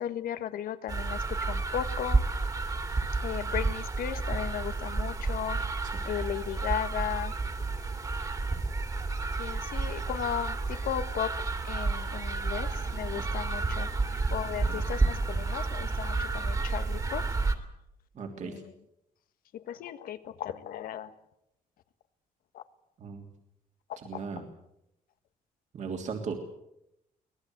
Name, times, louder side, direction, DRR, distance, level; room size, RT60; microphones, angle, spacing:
voice 1, 0.0-2.2 2.7-2.8 3.2-5.6 6.0-7.4 9.4-11.4 11.6-17.3 18.4-18.7 19.5-21.1 22.5-22.6, left 10 dB, 90° left, 11 dB, 1.5 m, -36 dB
sound 1, 0.9-17.5, right 3 dB, 25° right, 2.6 m, -31 dB
voice 2, 18.1-18.5 23.0-23.3 24.0-24.4 25.7-26.3, right 5 dB, 55° right, 2 dB, 3.2 m, -37 dB
24.0 x 19.0 x 8.0 m, 0.82 s
cardioid pair, 135°, 14 cm